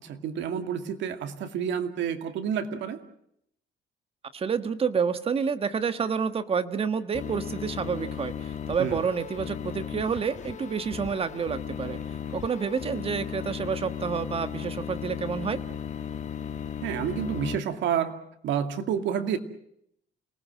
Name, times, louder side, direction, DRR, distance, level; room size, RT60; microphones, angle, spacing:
voice 1, 0.0-3.0 8.8-9.0 16.8-18.1 18.4-19.4, right 8 dB, 75° right, 7 dB, 2.5 m, -29 dB
voice 2, 4.3-12.0 12.3-15.6, right 6 dB, 30° right, 11 dB, 1.4 m, -29 dB
sound 1, 7.1-17.6, left 8 dB, 40° left, 1.3 m, -36 dB
29.0 x 19.0 x 7.7 m, 0.73 s
cardioid pair, 160°, 19 cm